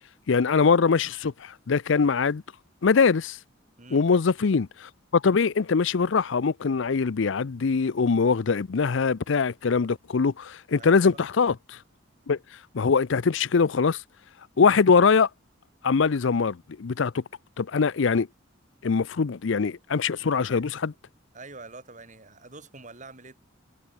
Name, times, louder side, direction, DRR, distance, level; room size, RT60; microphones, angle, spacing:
voice 1, 0.3-2.4 2.8-3.4 3.9-11.8 12.3-12.4 12.7-14.0 14.6-15.3 15.8-17.2 17.6-18.3 18.8-20.9, left 5 dB, 65° left, 0.5 m, -22 dB
voice 2, 10.7-11.0 20.3-20.7 21.3-23.4, right 3 dB, 40° right, 5.5 m, -46 dB
head